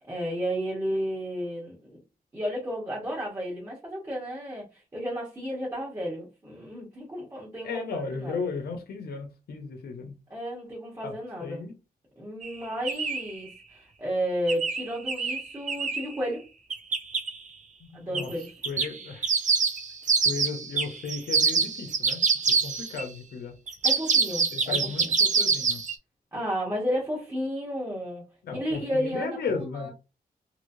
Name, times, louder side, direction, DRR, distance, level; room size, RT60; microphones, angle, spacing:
voice 1, 0.1-2.0 2.3-8.5 10.3-11.7 12.2-16.5 17.9-18.5 23.8-25.1 26.3-28.3 28.5-29.9, equal, 20° right, 1.2 m, -32 dB
voice 2, 7.6-10.1 11.0-11.1 11.4-11.7 17.8-18.3 18.7-19.3 20.2-23.5 24.5-25.8 28.4-29.9, left 4 dB, 90° left, 0.8 m, -35 dB
sound 1, 12.4-12.5 12.8-13.3 14.5-16.1 16.7-17.3 18.1-18.3 18.6-23.0 23.7-25.9, right 5 dB, 50° right, 0.6 m, -25 dB
3.1 x 2.8 x 2.6 m
wide cardioid pair, 130°, 16 cm